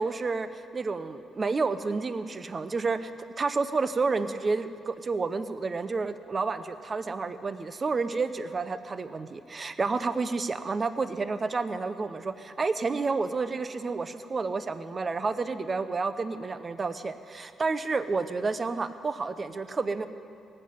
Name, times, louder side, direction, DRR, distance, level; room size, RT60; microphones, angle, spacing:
voice 1, 0.0-3.1 3.4-20.1, right 4 dB, 35° right, 11 dB, 0.7 m, -30 dB
18.5 x 7.6 x 7.8 m, 2.5 s
cardioid pair, 90°, 0 cm